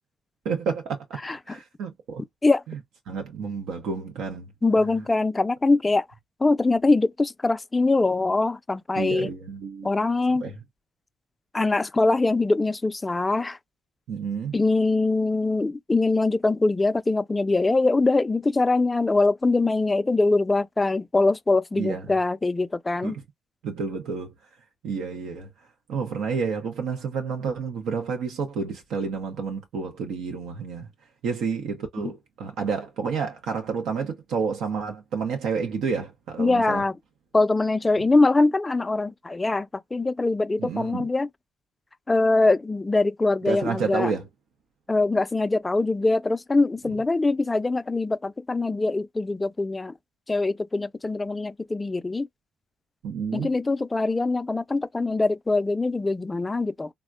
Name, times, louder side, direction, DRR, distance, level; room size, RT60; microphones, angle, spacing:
voice 1, 0.4-1.2 1.5-2.2 2.7-2.8 3.1-4.5 4.8-4.9 8.9-9.9 10.4-10.6 14.1-14.5 21.8-22.1 23.0-23.2 23.6-24.3 24.8-25.5 25.9-30.9 31.2-36.8 40.6-41.1 43.5-44.2 53.0-53.5, right 5 dB, 80° right, 0.6 m, -30 dB
voice 2, 1.2-1.6 2.4-2.6 4.6-6.1 6.4-9.3 9.8-10.5 11.5-13.6 14.5-23.2 36.4-37.0 37.3-41.3 42.1-44.1 44.9-49.9 50.3-52.3 53.3-56.9, left 3 dB, 20° left, 0.3 m, -23 dB
3.5 x 2.1 x 2.4 m
cardioid pair, 90°, 0 cm